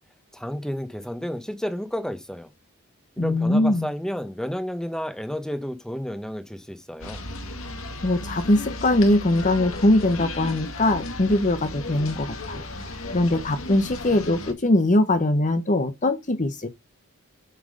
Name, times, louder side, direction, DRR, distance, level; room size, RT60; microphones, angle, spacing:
voice 1, 0.3-2.5 3.2-7.2, equal, 5° left, 1.1 m, -31 dB
voice 2, 3.2-3.9 8.0-12.6 13.1-16.7, left 1 dB, 35° left, 0.8 m, -21 dB
sound 1, 7.0-14.5, left 2 dB, 65° left, 1.7 m, -35 dB
7.6 x 7.2 x 4.9 m
head